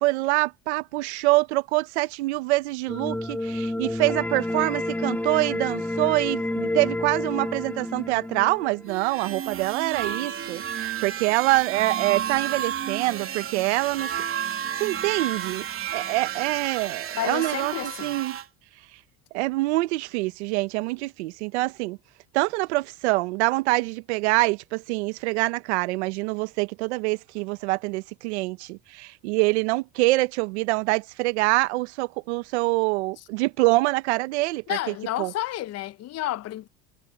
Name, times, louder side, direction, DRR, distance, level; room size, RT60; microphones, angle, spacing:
voice 1, 0.0-15.6 15.9-18.4 19.3-22.0 22.3-35.3, right 22 dB, 85° right, 1.2 m, -25 dB
sound 1, 2.9-8.9, left 1 dB, 5° left, 1.6 m, -29 dB
sound 2, 8.8-18.4, right 9 dB, 40° right, 3.0 m, -32 dB
voice 2, 17.1-18.1 34.7-36.7, left 14 dB, 50° left, 0.9 m, -31 dB
supercardioid pair, 95°, 33 cm